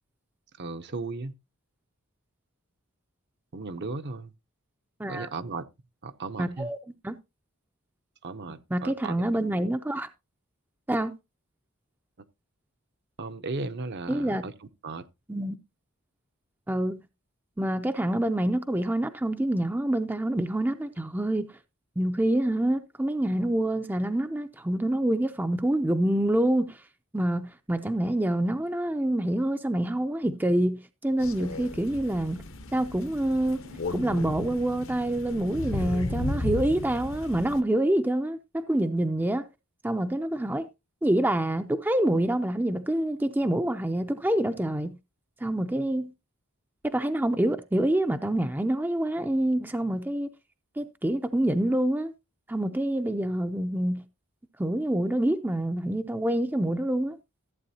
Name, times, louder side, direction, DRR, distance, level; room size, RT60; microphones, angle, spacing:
voice 1, 0.6-1.3 3.5-4.3 5.1-5.6 6.0-6.7 8.2-9.2 13.2-14.5 14.8-15.0, right 3 dB, 50° right, 0.7 m, -35 dB
voice 2, 6.4-6.8 7.0-7.1 8.7-10.1 10.9-11.1 14.1-14.4 15.3-15.6 16.7-17.0 17.6-21.5 22.0-26.8 27.1-32.4 32.7-33.6 33.9-39.4 39.8-40.7 41.0-44.9 45.4-46.1 46.8-50.3 50.8-52.1 52.5-54.0 54.6-57.2, right 1 dB, 10° right, 0.4 m, -26 dB
Crow, 31.2-37.6, left 1 dB, 60° left, 0.9 m, -35 dB
14.5 x 8.4 x 2.7 m
head